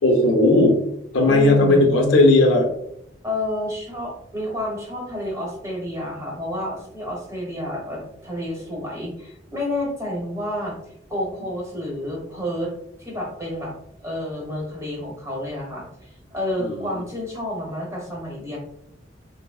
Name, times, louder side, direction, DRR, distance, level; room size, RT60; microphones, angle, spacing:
voice 1, 0.0-0.8 1.1-2.7 16.6-17.0, left 2 dB, 85° left, 1 dB, 0.6 m, -16 dB
voice 2, 1.3-1.9 3.2-10.8 11.1-12.7 13.0-13.7 14.0-18.6, left 1 dB, 15° right, -2 dB, 0.9 m, -30 dB
3.4 x 2.0 x 2.3 m, 0.74 s
head